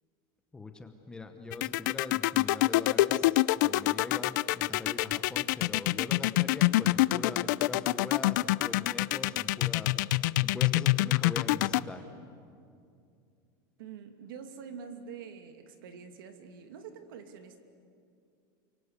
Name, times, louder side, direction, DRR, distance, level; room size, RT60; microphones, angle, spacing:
voice 1, 0.5-12.1, left 3 dB, 5° left, 6 dB, 1.0 m, -42 dB
sound 1, 1.5-11.8, left 18 dB, 60° left, 0.6 m, -25 dB
voice 2, 13.8-17.6, right 6 dB, 85° right, 7 dB, 2.6 m, -46 dB
29.0 x 24.0 x 8.3 m, 2.4 s
supercardioid pair, 175°, 11 cm